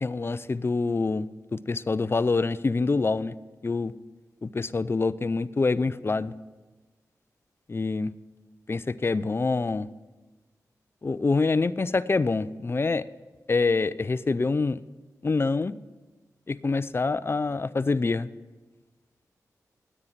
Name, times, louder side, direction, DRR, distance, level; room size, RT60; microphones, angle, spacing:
voice 1, 0.0-3.3 3.6-3.9 4.4-6.3 7.7-8.1 8.7-9.9 11.0-13.0 13.5-14.8 15.2-15.7 16.5-18.3, left 3 dB, 35° left, 17 dB, 0.5 m, -26 dB
9.7 x 9.2 x 7.3 m, 1.2 s
cardioid pair, 50°, 7 cm